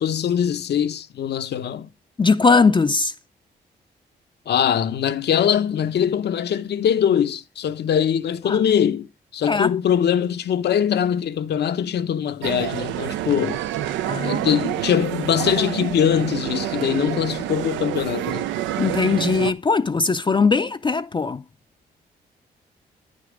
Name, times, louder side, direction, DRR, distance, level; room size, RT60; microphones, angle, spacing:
voice 1, 0.0-1.9 4.5-13.6 14.2-18.5, left 9 dB, 65° left, 0.7 m, -22 dB
voice 2, 2.2-3.1 8.5-8.6 9.4-9.7 14.1-14.4 18.8-21.4, left 4 dB, 25° left, 0.5 m, -19 dB
sound 1, 12.4-19.5, right 12 dB, 90° right, 0.5 m, -27 dB
9.4 x 5.2 x 5.0 m
supercardioid pair, 55°, 19 cm